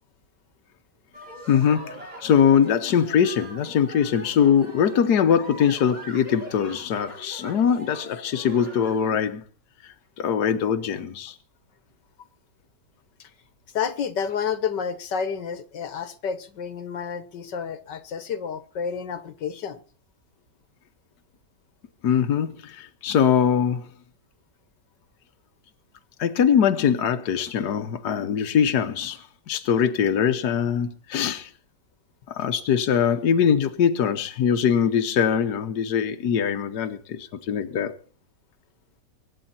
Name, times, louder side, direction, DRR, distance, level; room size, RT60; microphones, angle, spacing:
sound 1, 1.1-9.1, equal, 25° right, 4.1 m, -42 dB
voice 1, 1.5-9.4 9.8-11.4 22.0-23.9 26.2-31.5 32.3-37.9, left 8 dB, 70° left, 1.6 m, -22 dB
voice 2, 13.7-19.8, left 7 dB, 85° left, 2.0 m, -30 dB
24.0 x 9.9 x 4.3 m
omnidirectional pair, 1.8 m